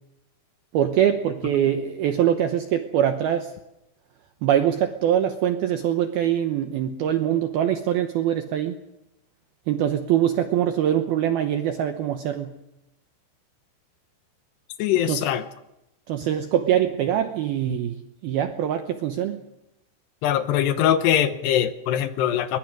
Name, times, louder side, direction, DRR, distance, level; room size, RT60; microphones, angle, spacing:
voice 1, 0.7-3.5 4.4-8.8 9.7-12.6 15.1-15.3 16.1-18.0 18.2-19.4, right 10 dB, 80° right, 7 dB, 2.3 m, -23 dB
voice 2, 14.8-15.4 20.2-22.6, left 10 dB, 75° left, 11 dB, 2.7 m, -22 dB
23.0 x 20.0 x 6.3 m, 0.89 s
omnidirectional pair, 5.6 m